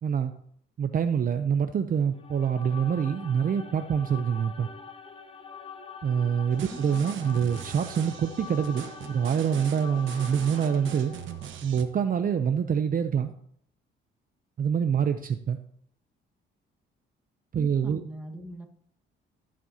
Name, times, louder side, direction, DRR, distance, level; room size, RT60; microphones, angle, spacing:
voice 1, 0.0-0.3 0.8-4.7 6.0-11.1 11.6-13.3 14.6-15.6 17.5-18.0, right 7 dB, 45° right, 9 dB, 0.6 m, -26 dB
sound 1, 2.1-11.6, left 6 dB, 30° left, 1.0 m, -44 dB
sound 2, 6.5-11.8, right 9 dB, 75° right, 1.1 m, -42 dB
voice 2, 17.5-18.7, right 1 dB, 5° right, 1 dB, 1.6 m, -42 dB
15.0 x 7.5 x 2.9 m, 0.65 s
cardioid pair, 90°, 20 cm